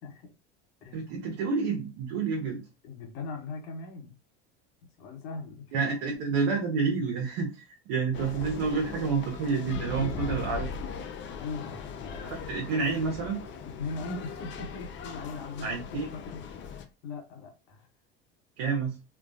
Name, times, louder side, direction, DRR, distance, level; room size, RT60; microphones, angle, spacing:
voice 1, 0.0-0.3 0.8-1.1 2.8-4.1 5.0-5.7 9.9-10.4 11.4-12.5 13.8-16.8 17.0-17.9, left 4 dB, 70° left, 2 dB, 1.0 m, -40 dB
voice 2, 0.9-2.6 5.7-10.7 12.2-13.4 15.6-16.1 18.6-19.0, right 5 dB, 65° right, 1 dB, 0.7 m, -29 dB
sound 1, 8.1-16.8, left 5 dB, 35° left, 0.5 m, -39 dB
2.2 x 2.2 x 2.6 m, 0.30 s
hypercardioid pair, 85°, 32 cm